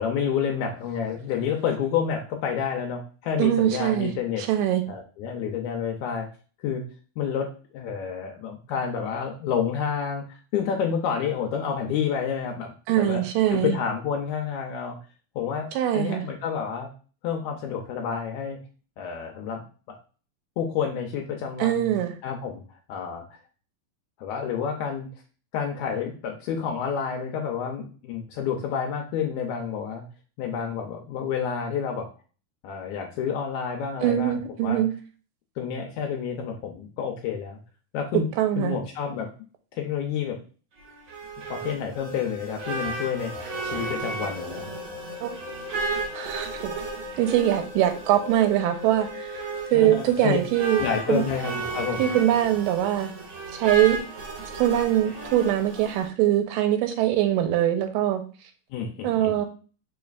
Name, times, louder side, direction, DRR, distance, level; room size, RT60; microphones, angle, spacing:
voice 1, 0.0-4.4 4.9-6.3 6.6-6.9 7.2-13.2 13.5-15.0 15.3-15.7 15.9-16.9 17.2-18.6 19.0-20.0 20.6-22.0 22.2-22.6 22.9-23.2 24.2-25.1 25.5-30.0 30.4-32.1 32.6-34.8 35.6-37.6 37.9-38.3 38.6-39.3 39.7-40.4 41.5-43.3 43.6-44.7 49.7-50.4 50.8-52.1 58.7-59.4, left 7 dB, 80° left, 2 dB, 1.7 m, -29 dB
voice 2, 3.4-4.1 4.4-4.8 12.9-13.7 15.7-16.2 21.6-22.1 34.0-34.9 38.4-38.8 45.2-46.8 47.2-49.3 49.7-50.8 51.1-51.3 52.0-53.1 53.5-54.0 54.5-58.2 59.0-59.5, right 12 dB, 90° right, 7 dB, 2.3 m, -23 dB
sound 1, 40.8-56.1, right 3 dB, 65° right, 1.0 m, -35 dB
sound 2, 41.9-50.9, left 6 dB, 65° left, 1.2 m, -41 dB
5.2 x 4.1 x 2.4 m, 0.38 s
omnidirectional pair, 3.9 m